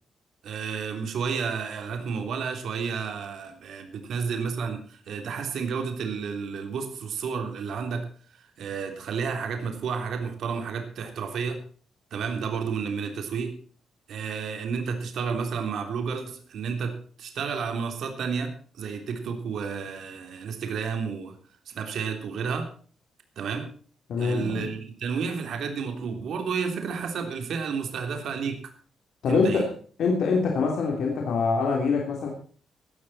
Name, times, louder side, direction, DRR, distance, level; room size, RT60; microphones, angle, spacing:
voice 1, 0.4-8.1 8.4-11.6 12.1-13.6 14.1-21.3 21.6-22.7 23.3-23.7 24.2-28.7 29.3-29.7, right 6 dB, 60° right, 5 dB, 3.4 m, -31 dB
voice 2, 24.1-24.7 29.2-29.7 30.0-32.3, left 4 dB, 60° left, 1 dB, 3.3 m, -24 dB
17.5 x 12.5 x 4.3 m, 0.44 s
wide cardioid pair, 175°, 0 cm